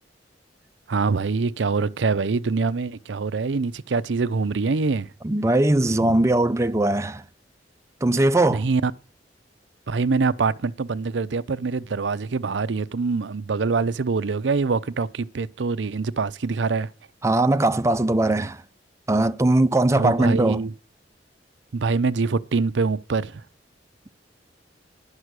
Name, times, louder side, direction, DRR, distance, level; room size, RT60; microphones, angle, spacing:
voice 1, 0.9-5.1 6.0-6.3 8.5-8.9 9.9-16.9 20.0-20.7 21.7-23.4, right 4 dB, 80° right, 0.6 m, -24 dB
voice 2, 5.2-7.2 8.0-8.7 17.2-18.6 19.1-20.6, right 2 dB, 15° right, 0.5 m, -20 dB
11.0 x 6.1 x 8.1 m
head